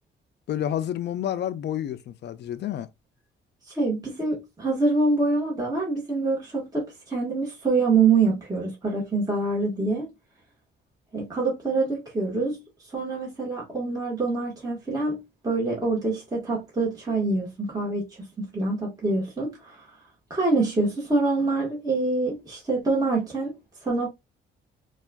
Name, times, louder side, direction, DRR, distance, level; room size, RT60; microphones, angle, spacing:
voice 1, 0.5-2.9, left 10 dB, 60° left, 0.5 m, -29 dB
voice 2, 3.7-10.1 11.1-12.6 12.9-18.0 18.4-19.8 20.3-23.5 23.8-24.1, right 3 dB, 20° right, 1.4 m, -25 dB
4.3 x 2.4 x 2.3 m
cardioid pair, 90°, 20 cm